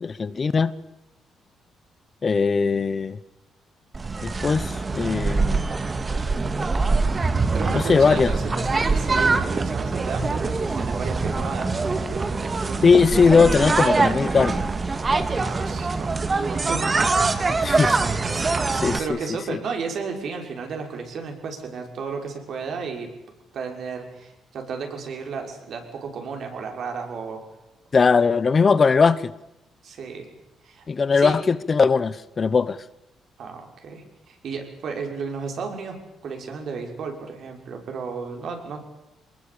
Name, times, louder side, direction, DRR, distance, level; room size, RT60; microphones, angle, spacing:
voice 1, 0.0-0.7 2.2-3.2 4.2-5.6 7.7-8.3 12.8-14.6 17.6-18.0 18.8-19.0 19.5-19.6 27.9-29.3 30.9-32.8, left 5 dB, 35° left, 1.0 m, -19 dB
sound 1, 3.9-19.0, right 3 dB, 30° right, 1.9 m, -24 dB
voice 2, 7.5-12.8 15.4-16.9 17.7-23.1 23.5-27.4 29.8-30.3 30.6-30.8 31.2-31.4 33.4-36.0 36.2-38.8, right 5 dB, 65° right, 6.0 m, -33 dB
23.5 x 20.0 x 8.7 m
cardioid pair, 90°, 0 cm